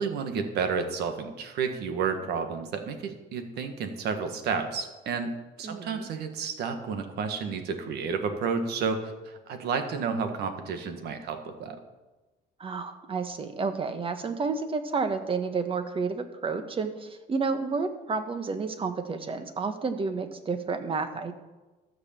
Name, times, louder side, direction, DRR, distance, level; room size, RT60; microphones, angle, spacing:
voice 1, 0.0-11.8, right 5 dB, 75° right, 7 dB, 1.6 m, -31 dB
voice 2, 5.6-6.1 12.6-21.4, right 4 dB, 30° right, 8 dB, 1.3 m, -31 dB
13.5 x 6.4 x 7.2 m, 1.2 s
cardioid pair, 110°, 17 cm